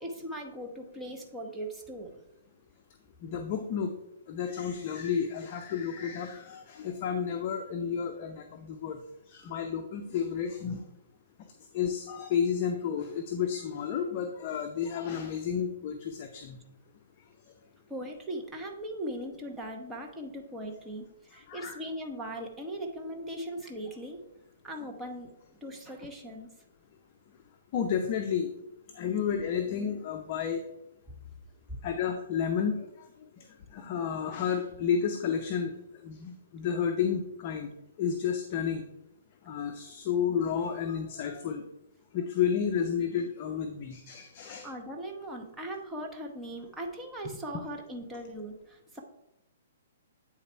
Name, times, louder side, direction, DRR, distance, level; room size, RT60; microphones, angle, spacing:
voice 1, 0.0-2.1 17.9-24.2 24.6-25.3 25.6-26.5 44.6-49.0, right 1 dB, 10° right, 0 dB, 0.9 m, -39 dB
voice 2, 3.2-3.9 4.3-9.0 9.3-10.8 11.7-16.6 21.5-21.7 27.7-28.5 28.9-30.6 31.8-33.1 33.4-35.7 36.0-37.7 38.0-38.8 39.5-41.6 42.1-44.7, left 7 dB, 35° left, 4 dB, 0.6 m, -31 dB
8.7 x 4.0 x 4.4 m, 0.89 s
hypercardioid pair, 155°, 0 cm